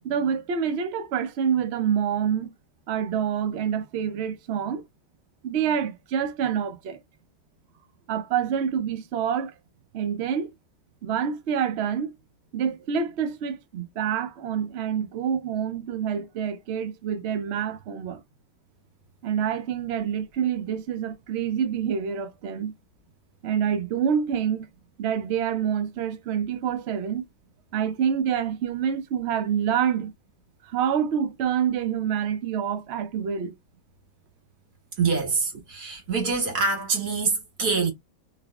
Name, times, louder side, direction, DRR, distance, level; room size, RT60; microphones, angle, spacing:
voice 1, 0.0-2.5 2.9-4.8 5.4-7.0 8.1-9.5 9.9-10.5 11.0-12.1 12.5-18.2 19.2-22.7 23.4-24.7 25.0-27.2 27.7-30.1 30.6-33.5, right 8 dB, 85° right, 0.5 m, -27 dB
voice 2, 35.0-37.9, right 4 dB, 65° right, 2.1 m, -25 dB
3.3 x 2.9 x 2.3 m
omnidirectional pair, 1.9 m